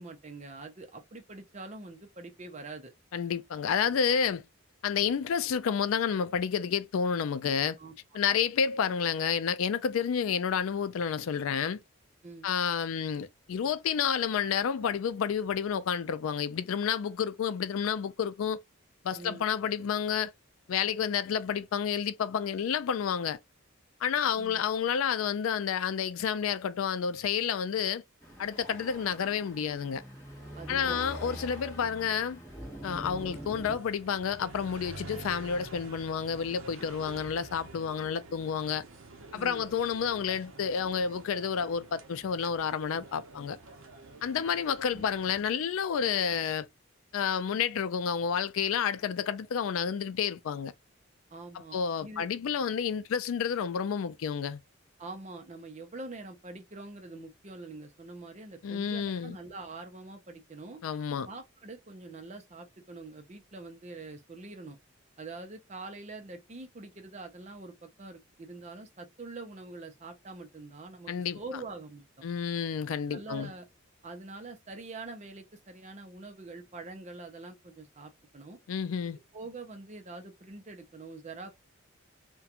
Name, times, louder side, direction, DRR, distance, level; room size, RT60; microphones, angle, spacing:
voice 1, 0.0-2.9 7.8-8.2 12.2-12.5 19.1-19.5 24.4-24.6 30.6-31.3 39.3-39.7 44.9-45.0 51.3-52.3 55.0-60.8 61.2-64.8 65.2-72.3 73.1-73.7 74.0-78.6 79.0-81.5, right 3 dB, 35° right, 0.6 m, -45 dB
voice 2, 3.1-4.4 4.8-7.8 8.1-11.8 12.4-18.6 19.0-20.3 20.7-23.4 24.0-28.0 28.4-30.0 30.7-32.4 32.8-38.8 39.3-43.6 44.2-46.7 47.1-50.7 51.7-54.6 58.6-59.4 60.8-61.3 71.1-71.4 72.2-73.5 78.7-79.2, left 7 dB, 80° left, 0.3 m, -30 dB
sound 1, 28.2-33.8, equal, 10° left, 1.0 m, -44 dB
sound 2, 33.2-45.5, right 3 dB, 80° right, 0.7 m, -48 dB
2.4 x 2.2 x 2.8 m
head